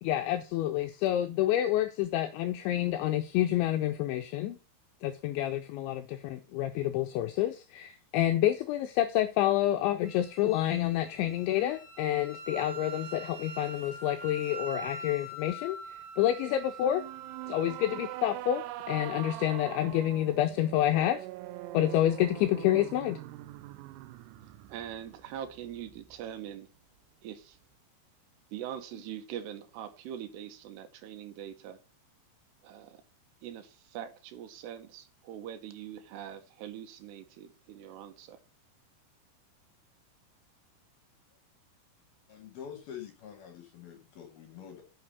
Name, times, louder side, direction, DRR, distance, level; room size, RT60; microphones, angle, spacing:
voice 1, 0.0-4.6 5.0-17.0 17.5-21.3 21.7-23.2, left 12 dB, 85° left, 2.6 m, -28 dB
Wind instrument woodwind instrument, 10.0-18.2, right 2 dB, 50° right, 2.4 m, -44 dB
sound 1, 16.8-26.2, right 16 dB, 85° right, 3.5 m, -43 dB
voice 2, 24.7-26.7 27.2-27.6 28.5-31.8 32.6-33.0 33.4-38.4, right 10 dB, 70° right, 2.8 m, -42 dB
voice 3, 42.3-44.8, left 9 dB, 65° left, 2.6 m, -46 dB
9.4 x 6.6 x 6.7 m
omnidirectional pair, 6.0 m